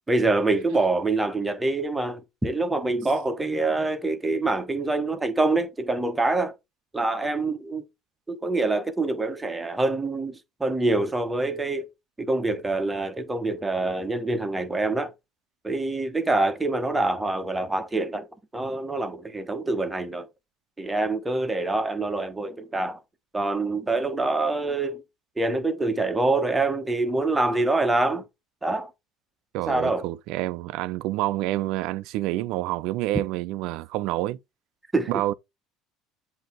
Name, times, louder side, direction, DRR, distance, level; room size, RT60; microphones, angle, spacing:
voice 1, 0.1-6.5 6.9-7.8 8.3-11.8 12.2-15.1 15.6-18.3 18.5-20.3 20.8-23.0 23.3-25.0 25.4-28.2 28.6-28.9 29.7-30.1 34.9-35.1, right 2 dB, 10° right, 1.1 m, -25 dB
voice 2, 29.5-34.4 35.1-35.3, right 16 dB, 70° right, 0.4 m, -28 dB
7.8 x 2.8 x 4.4 m
supercardioid pair, 120°, 0 cm